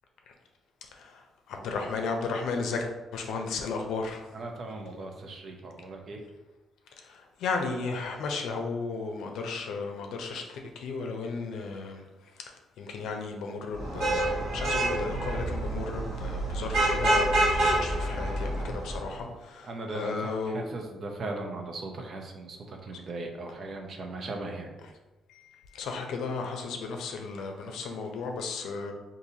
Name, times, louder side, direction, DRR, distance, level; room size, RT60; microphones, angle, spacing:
voice 1, 0.9-1.2 1.5-4.3 7.0-12.0 12.8-20.6 25.3-28.9, left 4 dB, 80° left, 3 dB, 0.5 m, -34 dB
voice 2, 4.3-6.2 19.6-24.7, right 2 dB, 55° right, 3 dB, 0.6 m, -38 dB
Vehicle horn car horn honking / Traffic noise roadway noise, 13.8-19.0, right 1 dB, 80° right, 1.0 m, -27 dB
3.9 x 2.6 x 2.7 m, 1.1 s
cardioid pair, 90°, 0 cm